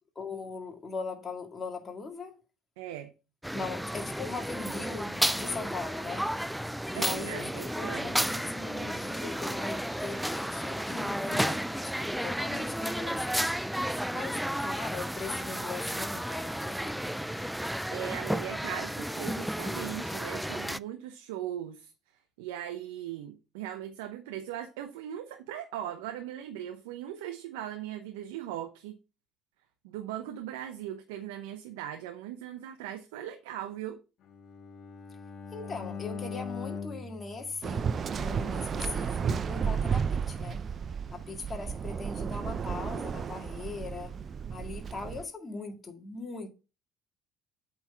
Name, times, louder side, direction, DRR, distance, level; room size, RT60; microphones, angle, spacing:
voice 1, 0.2-2.4 3.5-6.3 6.9-13.4 14.1-17.0 35.5-37.9 38.2-40.7 41.1-44.2 44.5-46.5, left 3 dB, 30° left, 2.0 m, -40 dB
voice 2, 2.8-3.1 6.9-8.2 17.9-21.9 22.4-29.0 29.8-34.0, right 11 dB, 80° right, 0.8 m, -39 dB
sound 1, 3.4-20.8, equal, 5° right, 0.4 m, -32 dB
Bowed string instrument, 34.3-38.4, left 5 dB, 55° left, 1.2 m, -41 dB
Waves surf, 37.6-45.2, right 6 dB, 40° right, 0.6 m, -33 dB
8.2 x 4.0 x 5.8 m
hypercardioid pair, 65°, 0 cm